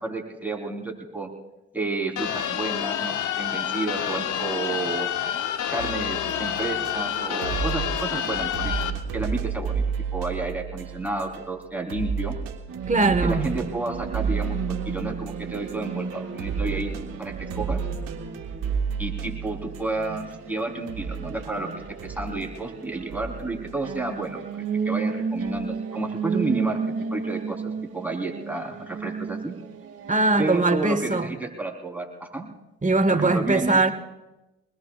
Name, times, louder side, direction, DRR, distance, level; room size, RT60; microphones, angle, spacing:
voice 1, 0.0-1.3 1.7-5.1 5.7-9.8 10.1-12.4 13.2-17.8 19.0-26.8 27.1-29.5 30.4-32.5 33.1-33.8, right 3 dB, 5° right, 3.9 m, -31 dB
sound 1, 2.2-8.9, left 9 dB, 65° left, 1.0 m, -28 dB
sound 2, 5.8-11.6 11.9-20.5 20.9-24.0 25.4-25.7, right 6 dB, 85° right, 1.5 m, -32 dB
sound 3, 12.7-30.7, right 5 dB, 45° right, 2.4 m, -34 dB
voice 2, 12.9-13.5 30.1-31.3 32.8-33.9, right 2 dB, 25° right, 1.5 m, -21 dB
25.5 x 20.5 x 2.5 m
hypercardioid pair, 55°, 33 cm